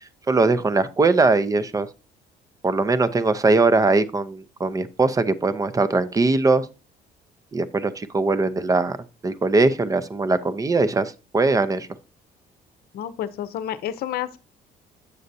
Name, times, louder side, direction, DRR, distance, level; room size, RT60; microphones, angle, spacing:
voice 1, 0.3-1.9 2.6-6.7 7.5-9.0 9.2-11.9, right 3 dB, 20° right, 0.6 m, -21 dB
voice 2, 12.9-14.4, left 11 dB, 65° left, 0.7 m, -30 dB
8.1 x 6.4 x 2.7 m
cardioid pair, 110°, 17 cm